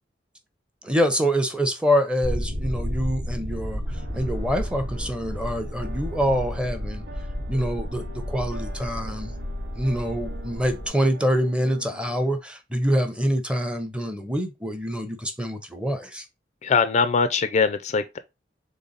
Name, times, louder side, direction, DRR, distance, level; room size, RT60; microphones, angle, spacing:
voice 1, 0.8-3.8 4.1-7.0 7.5-9.3 9.8-16.2, equal, 5° right, 0.6 m, -25 dB
sound 1, 2.2-10.9, equal, 60° right, 1.1 m, -32 dB
sound 2, 3.9-12.4, right 2 dB, 80° right, 0.8 m, -45 dB
voice 2, 16.6-18.2, left 5 dB, 40° left, 0.3 m, -22 dB
3.8 x 3.5 x 3.9 m
head